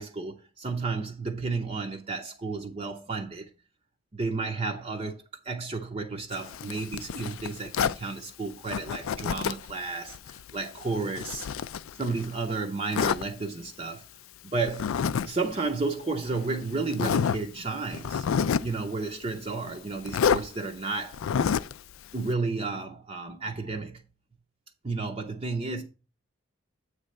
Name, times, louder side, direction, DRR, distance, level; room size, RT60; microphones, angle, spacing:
voice 1, 0.0-3.5 4.1-11.5 11.9-14.1 14.4-18.3 18.6-21.2 22.1-24.0 24.8-25.8, right 3 dB, 30° right, 0.6 m, -32 dB
Zipper (clothing), 6.3-8.0 8.7-9.7 10.1-12.3 12.9-13.2 14.7-15.3 15.5-15.7 16.4-16.5 16.9-17.4 17.9-18.7 20.1-20.4 21.1-21.8, left 7 dB, 70° left, 0.4 m, -28 dB
8.0 x 3.2 x 6.3 m
head